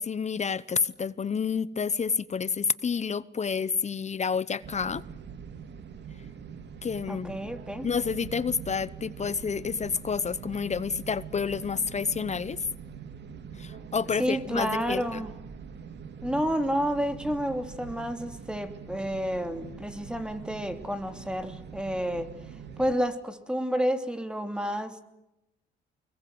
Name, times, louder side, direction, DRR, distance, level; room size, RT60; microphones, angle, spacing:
voice 1, 0.0-5.0 6.8-7.5 7.8-12.6 13.6-15.2, left 6 dB, 35° left, 18 dB, 0.8 m, -29 dB
sound 1, 4.6-22.9, right 7 dB, 60° right, 2.3 m, -43 dB
voice 2, 7.1-7.9 14.2-15.3 16.2-22.3 22.8-25.0, equal, 5° right, 7 dB, 2.9 m, -30 dB
24.5 x 22.0 x 7.8 m, 0.92 s
cardioid pair, 90°, 20 cm